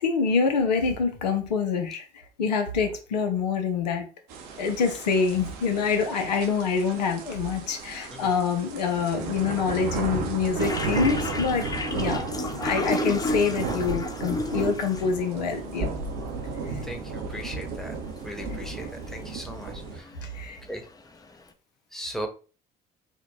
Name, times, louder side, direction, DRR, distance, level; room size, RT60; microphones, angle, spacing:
voice 1, 0.0-2.1 2.4-4.1 4.6-15.9 20.2-20.6, left 5 dB, 85° left, 7 dB, 0.6 m, -26 dB
sound 1, 4.3-20.0, right 4 dB, 75° right, 0.7 m, -34 dB
sound 2, 10.6-15.1 16.1-16.3 16.7-16.8 17.1-17.5 17.9-18.3 18.6-21.0, left 2 dB, 20° left, 0.6 m, -32 dB
voice 2, 16.8-17.9 18.2-20.1 20.7-20.8 21.9-22.3, equal, ahead, 4 dB, 1.0 m, -37 dB
3.6 x 2.2 x 3.6 m, 0.36 s
hypercardioid pair, 55°, 20 cm